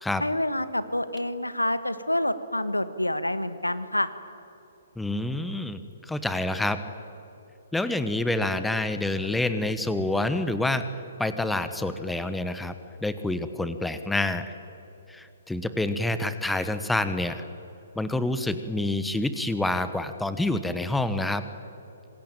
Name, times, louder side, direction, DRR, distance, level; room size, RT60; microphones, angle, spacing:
voice 1, 0.2-4.1, left 1 dB, 85° left, 14 dB, 1.5 m, -27 dB
voice 2, 5.0-5.8 6.1-6.8 7.7-10.9 11.2-12.7 13.0-14.5 15.1-17.4 17.9-21.4, left 2 dB, 5° left, 11 dB, 1.2 m, -27 dB
26.0 x 20.5 x 9.1 m, 2.9 s
figure-of-eight pair, 125°, 0 cm